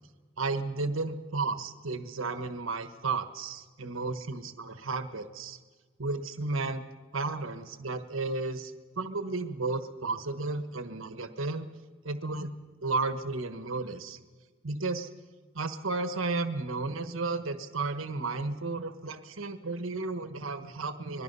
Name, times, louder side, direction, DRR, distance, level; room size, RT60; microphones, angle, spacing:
voice 1, 0.4-5.6 6.0-6.8 7.1-11.7 12.0-12.5 12.8-14.2 14.6-15.1 15.5-21.2, right 3 dB, 80° right, 10 dB, 1.3 m, -33 dB
25.0 x 21.0 x 5.5 m, 1.4 s
head